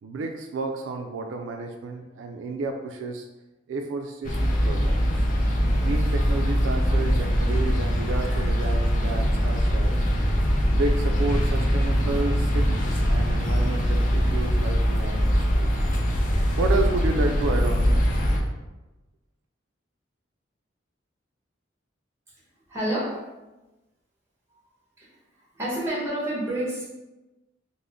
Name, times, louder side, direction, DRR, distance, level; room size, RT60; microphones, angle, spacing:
voice 1, 0.0-3.3 3.7-5.3 5.8-10.0 10.7-15.7 16.3-18.1, right 3 dB, 75° right, 3 dB, 0.3 m, -31 dB
sound 1, 4.2-18.4, equal, 40° left, 0.5 m, -22 dB
voice 2, 22.7-23.2 25.0-25.1 25.5-26.9, right 1 dB, 15° right, -6 dB, 1.0 m, -28 dB
3.5 x 2.0 x 3.6 m, 1.1 s
head